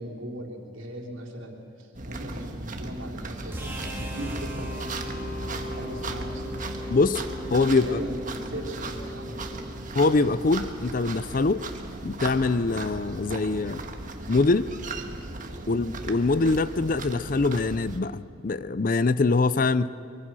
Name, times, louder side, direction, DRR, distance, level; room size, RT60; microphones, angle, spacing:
voice 1, 0.0-6.6 7.6-9.7 15.6-15.9, right 1 dB, 70° right, -1 dB, 3.5 m, -38 dB
sound 1, 1.9-18.0, right 2 dB, 40° right, 1.5 m, -37 dB
sound 2, 3.5-9.7, left 1 dB, 10° right, 2.5 m, -37 dB
voice 2, 6.9-7.2 7.5-8.0 9.9-11.6 12.0-13.8 14.3-14.7 15.7-19.9, left 3 dB, 40° left, 15 dB, 0.5 m, -23 dB
24.0 x 23.5 x 6.2 m, 2.6 s
head